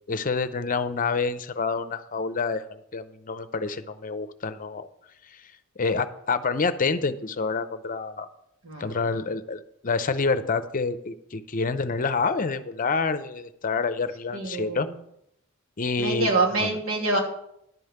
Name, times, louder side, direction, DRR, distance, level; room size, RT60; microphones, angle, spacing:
voice 1, 0.1-4.9 5.3-5.4 5.8-8.3 8.8-14.9 15.8-16.3 16.6-16.8, left 4 dB, 40° left, 12 dB, 0.6 m, -27 dB
voice 2, 8.6-9.1 14.3-14.9 16.0-17.2, right 3 dB, 90° right, -1 dB, 2.6 m, -26 dB
11.0 x 5.5 x 7.9 m, 0.76 s
head